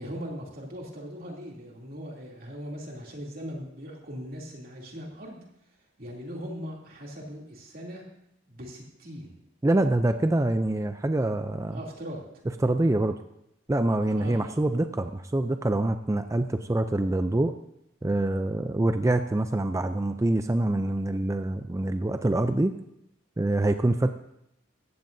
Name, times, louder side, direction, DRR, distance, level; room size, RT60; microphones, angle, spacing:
voice 1, 0.0-5.4 6.0-8.0 8.5-9.4 11.7-12.4 14.2-14.6, equal, 50° right, -2 dB, 2.8 m, -39 dB
voice 2, 9.6-11.8 12.6-13.2 13.7-17.5 18.0-22.7 23.4-24.1, right 1 dB, 15° right, 8 dB, 0.4 m, -25 dB
16.5 x 15.0 x 2.7 m, 0.82 s
head